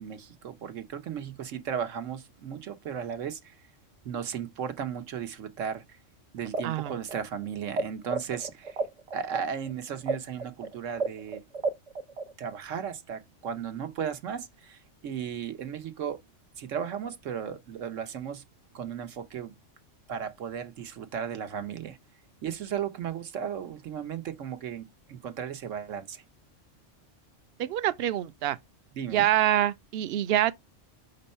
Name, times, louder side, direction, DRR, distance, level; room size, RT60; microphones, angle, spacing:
voice 1, 0.0-3.5 4.0-5.8 6.3-8.8 9.1-11.4 12.4-16.2 16.6-18.4 18.7-19.5 20.1-22.0 22.4-26.2 29.0-29.3, right 8 dB, 80° right, 1.3 m, -35 dB
sound 1, 6.4-7.8 8.1-12.6, right 4 dB, 30° right, 1.0 m, -31 dB
voice 2, 27.6-28.6 29.1-30.5, right 12 dB, 60° right, 0.7 m, -25 dB
5.4 x 4.0 x 5.5 m
omnidirectional pair, 1.3 m